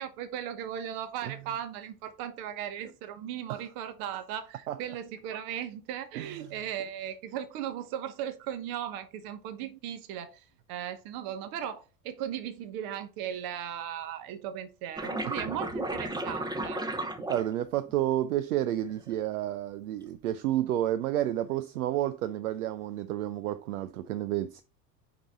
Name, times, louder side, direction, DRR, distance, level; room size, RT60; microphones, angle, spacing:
voice 1, 0.0-16.8, right 10 dB, 45° right, 1.2 m, -37 dB
sound 1, 15.0-17.9 18.8-19.2, right 1 dB, 10° right, 0.8 m, -34 dB
voice 2, 17.3-24.6, right 13 dB, 65° right, 0.6 m, -30 dB
6.0 x 4.9 x 3.6 m
figure-of-eight pair, 80°, 49 cm